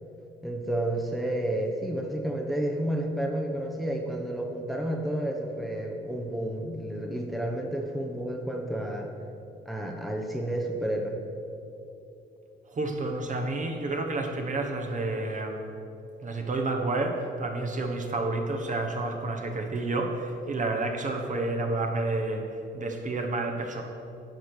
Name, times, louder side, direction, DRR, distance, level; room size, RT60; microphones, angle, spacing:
voice 1, 0.4-9.1 9.7-11.2, right 1 dB, ahead, 1 dB, 0.9 m, -31 dB
voice 2, 12.7-15.6 16.2-23.8, right 2 dB, 40° right, 3 dB, 1.2 m, -30 dB
10.5 x 5.0 x 6.3 m, 2.7 s
cardioid pair, 90°, 20 cm